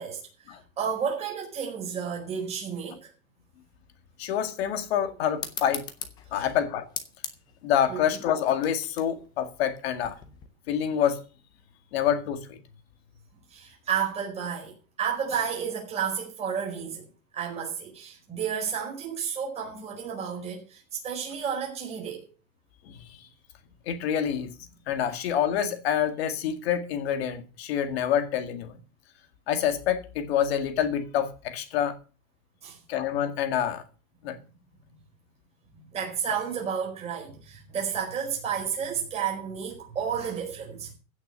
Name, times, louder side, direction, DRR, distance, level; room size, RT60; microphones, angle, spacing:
voice 1, 0.0-3.1 6.3-6.5 7.9-8.0 13.5-17.0 17.3-22.2 32.6-32.8 34.3-34.5 35.7-40.9, right 7 dB, 15° right, 4.7 m, -32 dB
voice 2, 4.2-5.8 6.3-6.9 7.6-10.2 10.7-11.2 11.9-12.6 22.8-23.3 23.9-24.5 24.9-28.8 29.5-31.9 32.9-33.8 34.2-34.4, left 9 dB, 50° left, 2.1 m, -27 dB
sound 1, 5.4-10.5, left 8 dB, 10° left, 0.5 m, -41 dB
16.0 x 6.4 x 6.9 m
supercardioid pair, 175°, 41 cm